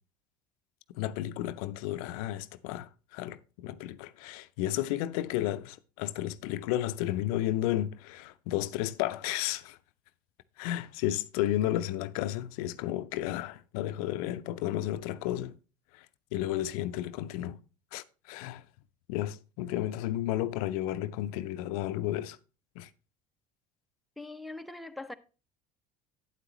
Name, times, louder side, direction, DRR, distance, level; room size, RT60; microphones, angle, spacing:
voice 1, 0.9-9.8 10.6-15.5 15.9-16.1 16.3-17.6 17.9-18.6 19.1-22.4 22.8-22.9, left 13 dB, 80° left, 0.5 m, -32 dB
voice 2, 24.2-25.1, left 2 dB, ahead, 0.7 m, -41 dB
8.8 x 8.0 x 3.0 m
hypercardioid pair, 75°, 19 cm